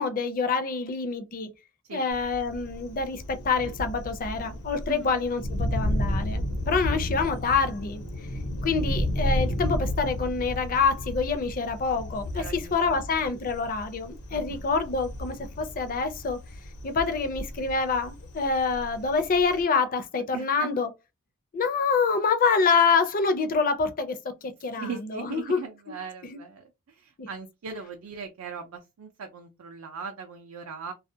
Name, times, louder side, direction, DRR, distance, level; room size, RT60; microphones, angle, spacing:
voice 1, 0.0-1.5 1.9-8.0 8.6-12.4 12.7-16.4 16.8-20.9 21.5-24.2 24.4-25.6 26.2-26.4 27.2-27.3, left 4 dB, 40° left, 0.4 m, -26 dB
Thunder, 2.1-19.6, equal, 85° left, 0.8 m, -33 dB
voice 2, 12.3-13.1 14.3-14.7 20.3-20.7 24.7-30.9, right 5 dB, 70° right, 0.4 m, -39 dB
2.3 x 2.1 x 2.7 m
head